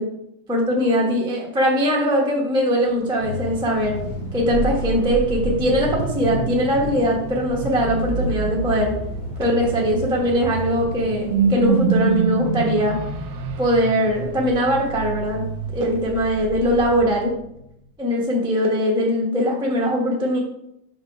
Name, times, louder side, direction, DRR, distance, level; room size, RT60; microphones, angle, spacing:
voice 1, 0.5-4.0 4.3-9.0 9.4-13.0 13.6-15.4 15.7-17.3 18.0-20.4, equal, 5° right, -2 dB, 0.4 m, -21 dB
sound 1, 2.8-17.0, right 1 dB, 85° left, 2.8 m, -37 dB
sound 2, 3.2-12.2, left 1 dB, 50° left, 1.4 m, -37 dB
sound 3, 4.3-17.7, right 5 dB, 80° right, 1.5 m, -27 dB
6.1 x 3.1 x 5.4 m, 0.81 s
omnidirectional pair, 2.4 m